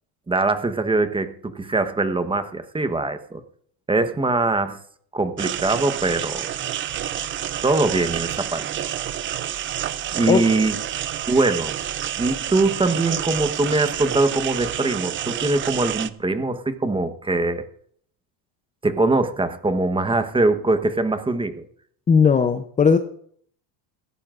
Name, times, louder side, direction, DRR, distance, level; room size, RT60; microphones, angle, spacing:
voice 1, 0.3-3.4 3.9-4.8 5.1-6.5 7.6-8.8 10.1-10.8 11.3-11.7 12.2-17.6 18.8-21.6, right 2 dB, 10° right, 9 dB, 1.0 m, -22 dB
sound 1, 5.4-16.1, right 11 dB, 25° right, 0.4 m, -29 dB
voice 2, 22.1-23.0, left 6 dB, 15° left, 8 dB, 0.6 m, -17 dB
17.0 x 16.5 x 2.5 m, 0.63 s
cardioid pair, 130°, 48 cm